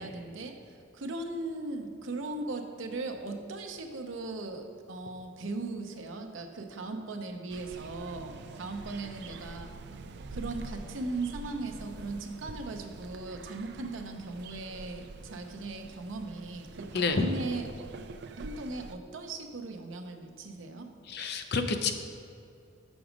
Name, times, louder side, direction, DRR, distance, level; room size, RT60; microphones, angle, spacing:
voice 1, 0.0-9.7 10.3-17.9 18.4-20.9, right 2 dB, 80° right, 5 dB, 0.7 m, -38 dB
sound 1, 7.5-18.9, right 3 dB, 55° right, 0.4 m, -45 dB
voice 2, 16.9-17.3 21.1-21.9, left 4 dB, 55° left, 7 dB, 0.5 m, -28 dB
6.2 x 6.1 x 5.1 m, 2.5 s
head